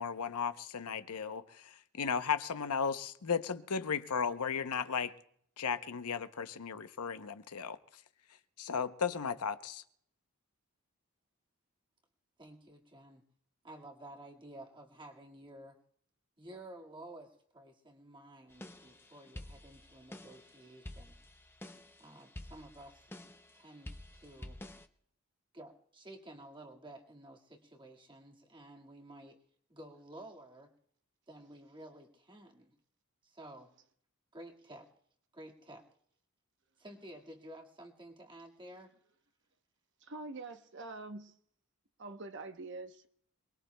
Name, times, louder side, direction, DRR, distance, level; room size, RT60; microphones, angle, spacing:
voice 1, 0.0-5.1 5.6-7.8 8.6-9.8, left 6 dB, 90° left, 0.7 m, -35 dB
voice 2, 12.4-13.2 13.6-15.8 16.4-21.2 22.0-23.1 23.5-24.6 25.5-29.4 29.7-30.8 31.3-32.7 33.2-33.7 34.3-34.9 35.3-35.8 36.8-38.9, right 1 dB, 20° right, 1.9 m, -52 dB
sound 1, 18.5-24.9, left 1 dB, 10° left, 0.5 m, -50 dB
voice 3, 40.0-41.3 42.0-43.1, right 3 dB, 55° right, 0.9 m, -45 dB
27.5 x 20.5 x 2.2 m
head